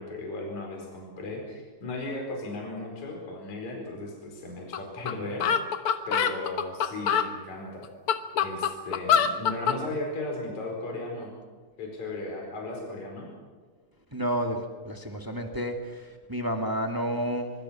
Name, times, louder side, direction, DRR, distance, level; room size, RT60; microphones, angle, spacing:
voice 1, 0.0-5.5 6.1-7.9 8.4-11.3 11.8-13.3, left 2 dB, 50° left, 0 dB, 5.9 m, -36 dB
sound 1, 4.7-4.8 5.1-5.2 5.4-7.3 7.8-9.8, left 7 dB, 75° left, 1.2 m, -24 dB
voice 2, 14.1-14.6 14.8-17.5, equal, 10° right, 3 dB, 1.2 m, -30 dB
24.5 x 24.5 x 5.9 m, 1.5 s
omnidirectional pair, 4.4 m